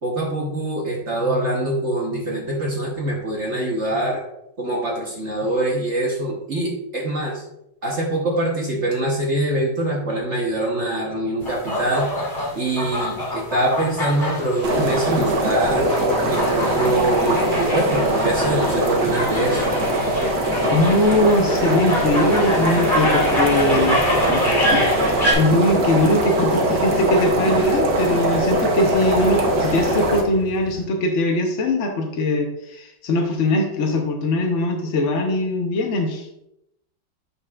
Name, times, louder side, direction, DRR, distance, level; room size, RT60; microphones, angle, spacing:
voice 1, 0.0-4.2 4.6-7.4 7.8-12.1 12.5-15.8 16.2-19.6, right 1 dB, 40° right, -2 dB, 1.2 m, -24 dB
sound 1, 11.4-25.3, left 1 dB, 25° left, 2.3 m, -26 dB
sound 2, 14.6-30.2, right 1 dB, 60° right, 1.6 m, -21 dB
voice 2, 20.7-24.0 24.3-36.3, left 1 dB, 60° left, 2 dB, 0.7 m, -21 dB
sound 3, 23.1-30.8, right 4 dB, 75° right, 2.5 m, -39 dB
8.5 x 6.7 x 2.4 m, 0.82 s
omnidirectional pair, 2.2 m